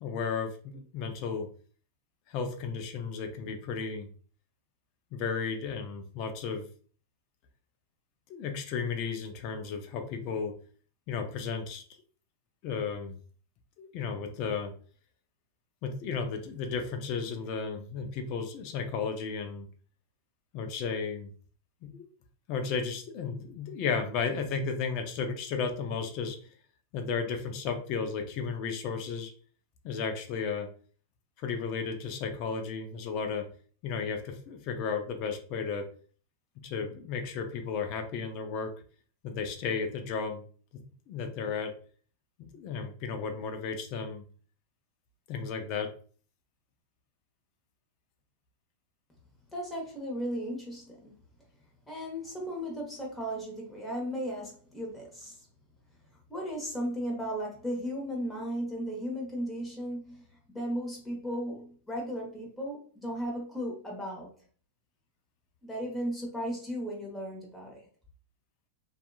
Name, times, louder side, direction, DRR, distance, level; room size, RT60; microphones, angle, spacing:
voice 1, 0.0-1.5 2.3-4.1 5.1-6.7 8.3-10.5 11.1-11.8 12.6-13.1 13.8-14.7 15.8-19.7 20.5-21.3 21.8-22.1 22.5-26.4 26.9-29.3 29.8-30.7 31.4-33.5 33.8-35.9 36.6-38.7 39.2-40.4 41.1-41.7 42.5-44.2 45.3-45.9, left 5 dB, 50° left, 0.6 m, -34 dB
voice 2, 49.5-51.1 51.9-55.4 56.3-60.2 60.5-64.3 65.6-67.8, equal, 10° left, 1.1 m, -35 dB
2.7 x 2.4 x 2.3 m
hypercardioid pair, 120°, 0 cm